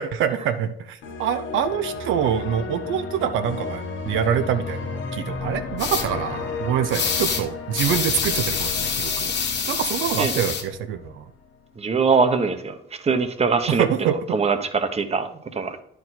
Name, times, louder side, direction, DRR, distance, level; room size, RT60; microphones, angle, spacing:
voice 1, 0.0-9.3 9.7-11.3 13.7-14.2, right 9 dB, 85° right, 9 dB, 0.6 m, -25 dB
sound 1, 1.0-11.1, left 4 dB, 80° left, 1.4 m, -33 dB
sound 2, 5.8-6.0 6.9-7.4 7.7-10.6, left 5 dB, 60° left, 1.5 m, -26 dB
voice 2, 11.8-12.7 13.0-15.8, right 5 dB, 30° right, 9 dB, 0.9 m, -22 dB
10.0 x 4.7 x 4.1 m, 0.73 s
cardioid pair, 90°, 20 cm